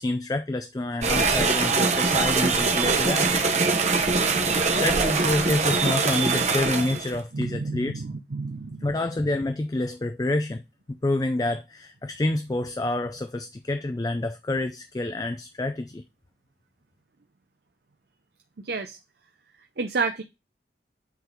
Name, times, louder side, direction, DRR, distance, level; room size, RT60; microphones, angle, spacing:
voice 1, 0.0-3.3 4.8-8.0 8.8-10.6 11.0-16.0, left 2 dB, 20° left, 0.4 m, -28 dB
sound 1, 1.0-7.1, right 4 dB, 40° right, 1.0 m, -23 dB
voice 2, 7.3-8.8 18.6-19.0 19.8-20.2, right 4 dB, 65° right, 0.6 m, -30 dB
8.2 x 3.9 x 4.5 m
head